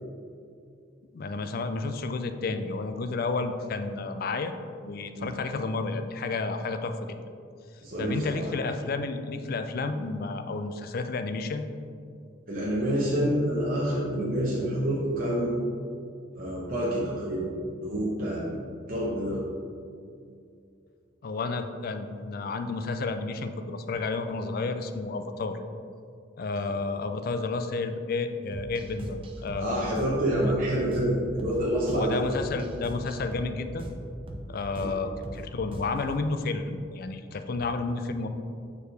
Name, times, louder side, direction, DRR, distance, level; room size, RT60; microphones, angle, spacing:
voice 1, 1.1-4.5 4.8-7.2 8.0-11.7 21.2-25.6 26.4-30.2 31.9-33.9 34.5-38.3, left 3 dB, 50° left, 8 dB, 0.4 m, -31 dB
voice 2, 7.8-8.4 12.5-15.5 16.3-17.5 17.8-18.5 18.9-19.4 29.6-32.2 34.8-34.9, right 1 dB, 45° right, -6 dB, 0.9 m, -27 dB
sound 1, 28.5-36.1, right 1 dB, 25° right, 0.5 m, -40 dB
6.5 x 4.8 x 3.3 m, 2.4 s
head